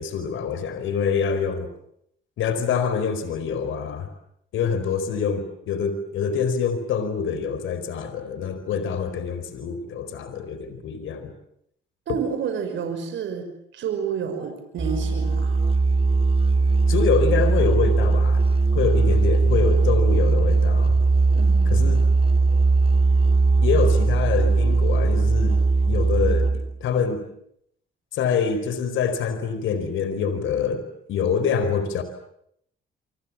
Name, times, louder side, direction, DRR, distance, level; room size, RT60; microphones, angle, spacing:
voice 1, 0.0-1.7 2.4-4.1 4.5-11.3 12.1-12.2 16.9-18.4 18.7-21.0 21.7-22.0 23.6-25.6 25.9-27.2 28.1-30.8 31.1-32.0, left 6 dB, 80° left, 10 dB, 4.7 m, -25 dB
voice 2, 12.1-15.6 21.3-22.0, right 7 dB, 75° right, 6 dB, 5.9 m, -30 dB
Musical instrument, 14.8-26.8, right 3 dB, 30° right, 3.7 m, -19 dB
29.0 x 25.5 x 7.4 m, 0.73 s
cardioid pair, 90°, 20 cm